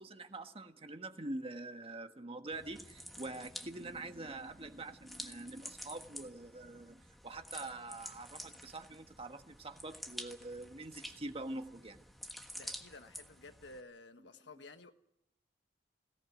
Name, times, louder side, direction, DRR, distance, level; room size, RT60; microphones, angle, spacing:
voice 1, 0.0-12.0, right 2 dB, 35° right, 1.6 m, -45 dB
sound 1, 2.5-13.8, equal, ahead, 1.4 m, -50 dB
voice 2, 12.5-14.9, left 3 dB, 75° left, 1.5 m, -53 dB
22.0 x 17.5 x 9.4 m
head